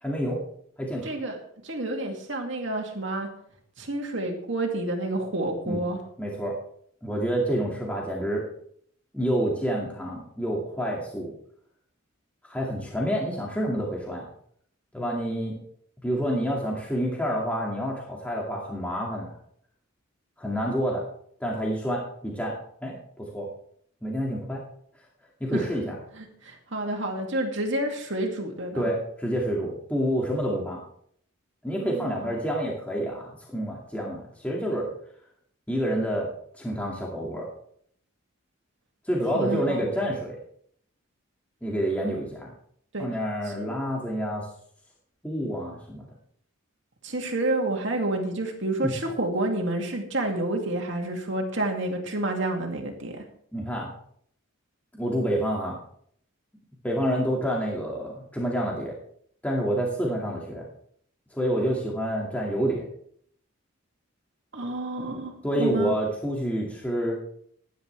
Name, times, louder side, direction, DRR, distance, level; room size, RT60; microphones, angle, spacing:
voice 1, 0.0-0.4 0.8-1.1 5.7-5.8 6.2-6.6 7.0-8.4 9.1-11.3 12.4-14.3 14.9-15.5 16.0-19.4 20.4-21.1 21.4-22.6 22.8-23.5 24.0-24.6 25.4-25.9 28.7-30.8 31.6-34.9 35.7-36.3 36.6-37.5 39.0-40.4 41.6-42.5 43.0-44.5 45.2-46.1 48.8-48.9 53.5-53.9 55.0-55.8 56.8-58.9 59.4-60.7 61.3-62.8 65.4-67.2, equal, 5° left, -3 dB, 2.2 m, -28 dB
voice 2, 1.0-1.4 1.6-3.3 3.8-6.0 25.5-25.7 26.1-28.9 31.8-32.3 39.3-39.9 42.9-43.1 43.6-43.8 47.0-53.2 64.5-65.9, right 1 dB, 60° right, 1 dB, 2.6 m, -29 dB
17.0 x 11.0 x 3.5 m, 0.64 s
head